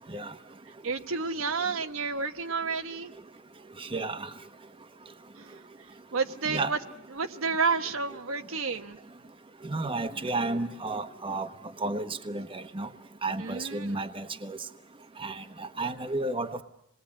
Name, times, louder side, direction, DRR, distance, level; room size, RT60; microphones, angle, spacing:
voice 1, 0.8-3.1 5.4-5.6 6.1-6.8 7.1-9.0 13.4-14.1, right 4 dB, 90° right, 7 dB, 1.2 m, -30 dB
voice 2, 3.8-4.3 6.5-6.7 9.6-11.5 11.8-12.9 13.2-14.6 15.2-16.6, right 2 dB, 25° right, 8 dB, 1.1 m, -32 dB
27.0 x 20.5 x 8.7 m, 0.82 s
head